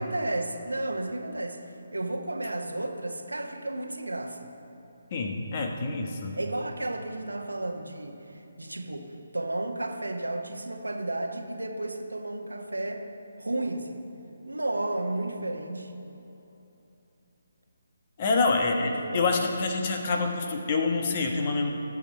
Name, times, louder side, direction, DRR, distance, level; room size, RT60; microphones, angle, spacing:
voice 1, 0.0-1.6 1.9-4.5 6.3-9.1 9.3-13.0 13.4-14.0 14.5-15.9 18.6-19.3, right 2 dB, 75° right, 4 dB, 1.3 m, -32 dB
voice 2, 5.1-6.4 18.2-21.7, left 3 dB, 35° left, 3 dB, 1.3 m, -27 dB
20.0 x 7.6 x 4.3 m, 3.0 s
figure-of-eight pair, 145°, 0 cm